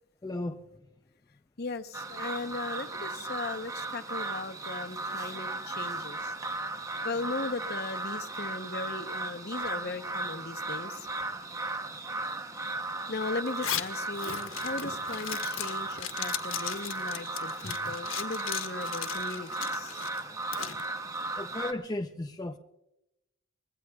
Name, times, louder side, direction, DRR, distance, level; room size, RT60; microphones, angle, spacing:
voice 1, 0.2-0.6 17.6-17.7 21.4-22.6, left 2 dB, 20° left, 0.4 m, -35 dB
voice 2, 1.6-6.3 7.0-11.1 13.1-20.0, left 3 dB, 50° left, 0.8 m, -38 dB
sound 1, 1.9-21.7, right 2 dB, 15° right, 0.7 m, -36 dB
Zipper (clothing), 13.5-20.8, left 10 dB, 65° left, 1.1 m, -37 dB
24.0 x 20.5 x 2.3 m
head